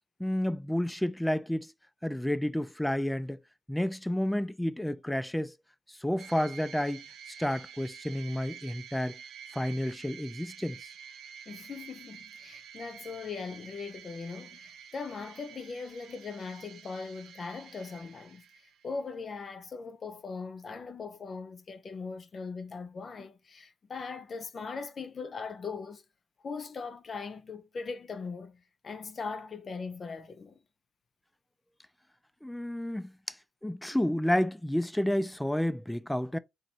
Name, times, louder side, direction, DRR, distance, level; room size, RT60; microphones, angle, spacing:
voice 1, 0.2-1.7 2.0-3.4 3.7-5.5 6.0-9.1 9.5-10.9 32.4-33.4 33.6-36.4, left 1 dB, 5° left, 0.3 m, -30 dB
sound 1, 6.2-19.0, right 8 dB, 75° right, 0.8 m, -49 dB
voice 2, 11.5-26.0 26.4-30.6 32.9-33.1, left 4 dB, 45° left, 0.7 m, -40 dB
4.2 x 2.5 x 4.1 m
cardioid pair, 90°, 0 cm